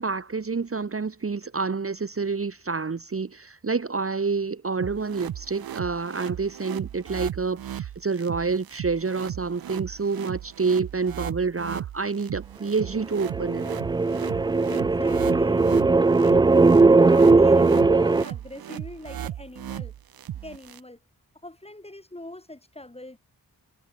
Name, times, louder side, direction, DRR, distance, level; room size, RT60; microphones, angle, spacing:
voice 1, 0.0-13.7, right 4 dB, 35° right, 1.1 m, -28 dB
sound 1, 4.8-20.8, right 11 dB, 70° right, 0.6 m, -37 dB
sound 2, 13.1-18.2, right 3 dB, 15° right, 0.3 m, -18 dB
voice 2, 14.7-15.7 16.1-19.9 20.4-21.0 21.4-23.2, left 1 dB, 15° left, 2.1 m, -42 dB
cardioid pair, 50°, 37 cm